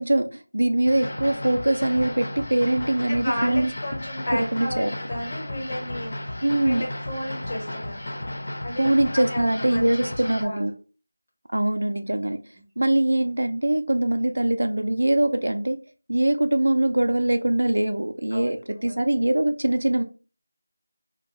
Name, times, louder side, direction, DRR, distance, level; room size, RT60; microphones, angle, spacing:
voice 1, 0.0-3.7 4.3-4.9 6.4-6.8 8.8-10.7 11.5-12.4 12.8-15.8 16.1-18.6 18.8-20.0, right 1 dB, 75° right, 7 dB, 0.4 m, -22 dB
sound 1, 0.9-10.4, left 1 dB, 50° left, 0.6 m, -34 dB
voice 2, 3.1-8.3 8.6-10.6 12.5-12.6 18.3-18.5 18.8-18.9, left 1 dB, 25° left, -4 dB, 1.1 m, -33 dB
2.5 x 2.2 x 3.0 m, 0.34 s
figure-of-eight pair, 175°, 0 cm